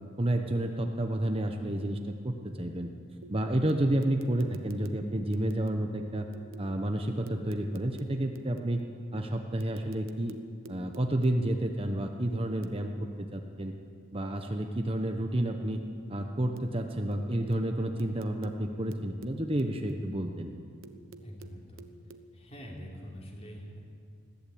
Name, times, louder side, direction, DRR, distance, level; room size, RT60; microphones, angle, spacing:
voice 1, 0.2-2.9 3.3-6.3 6.6-8.8 9.1-10.4 10.7-13.7 14.1-15.8 16.1-20.5, right 1 dB, 25° right, 4 dB, 1.0 m, -30 dB
sound 1, 3.2-6.8 7.3-9.1 9.6-11.5 12.6-12.9 16.6-16.8 17.1-20.2 20.8-22.3, right 4 dB, 75° right, 1.1 m, -52 dB
voice 2, 21.2-21.9 22.3-23.8, equal, 30° left, -2 dB, 3.6 m, -45 dB
21.0 x 15.0 x 8.7 m, 2.3 s
head